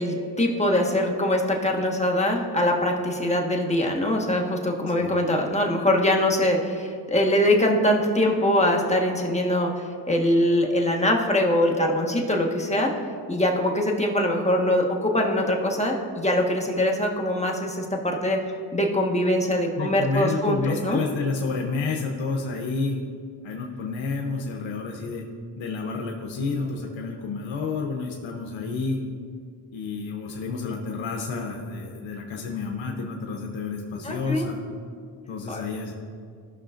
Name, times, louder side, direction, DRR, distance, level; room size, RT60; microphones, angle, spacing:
voice 1, 0.0-12.9 13.3-18.4 18.7-21.0 34.0-34.4 35.5-35.6, left 1 dB, 15° left, 1 dB, 1.4 m, -23 dB
voice 2, 19.8-23.0 23.4-25.2 25.5-29.0 29.7-34.6 35.3-35.9, left 4 dB, 75° left, 0 dB, 0.9 m, -30 dB
15.0 x 5.8 x 2.5 m, 2.2 s
cardioid pair, 60°, 46 cm